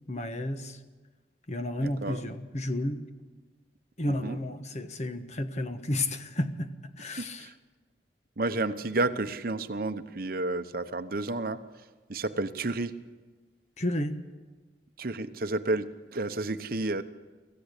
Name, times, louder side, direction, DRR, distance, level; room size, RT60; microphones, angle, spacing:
voice 1, 0.1-0.8 1.5-3.0 4.0-6.7 7.0-7.5 13.8-14.2, left 1 dB, 40° left, 9 dB, 1.3 m, -32 dB
voice 2, 1.8-2.2 4.1-4.4 7.2-7.5 8.4-11.6 12.1-12.9 15.0-17.0, right 2 dB, 55° right, 9 dB, 1.0 m, -31 dB
25.0 x 15.5 x 8.3 m, 1.3 s
head